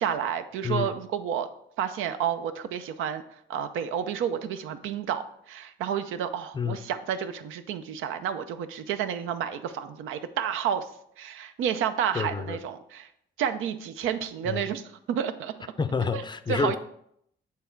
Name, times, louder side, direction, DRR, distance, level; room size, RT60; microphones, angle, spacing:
voice 1, 0.0-1.5 1.8-3.2 3.5-10.9 11.2-13.1 13.4-15.5 16.1-16.2 16.5-16.8, right 8 dB, 85° right, 9 dB, 0.6 m, -30 dB
voice 2, 12.1-12.6 14.5-14.7 15.8-16.8, left 5 dB, 25° left, 11 dB, 0.4 m, -28 dB
8.6 x 3.5 x 4.5 m, 0.72 s
cardioid pair, 90°, 20 cm